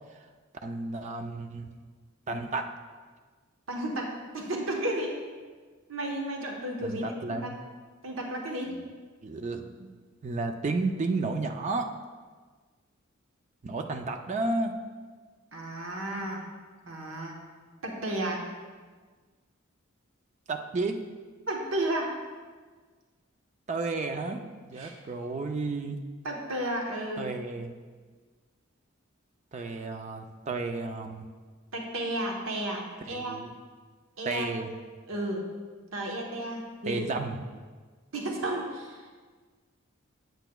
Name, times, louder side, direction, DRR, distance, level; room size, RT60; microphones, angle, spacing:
voice 1, 0.6-1.7 2.3-2.7 6.8-7.6 9.2-9.9 10.2-11.9 13.6-14.8 20.5-21.0 23.7-26.0 27.2-27.7 29.5-31.3 33.1-33.5 34.3-34.7 36.9-37.4, right 3 dB, 35° right, 5 dB, 0.4 m, -32 dB
voice 2, 3.7-5.2 5.9-7.5 8.0-8.8 15.5-16.4 16.9-17.4 17.8-18.4 21.5-22.1 24.8-24.9 26.2-27.3 31.7-33.4 34.2-34.5 35.1-35.5 35.9-37.0 38.1-39.1, right 1 dB, 75° right, 0 dB, 1.0 m, -33 dB
8.9 x 7.8 x 2.3 m, 1.4 s
head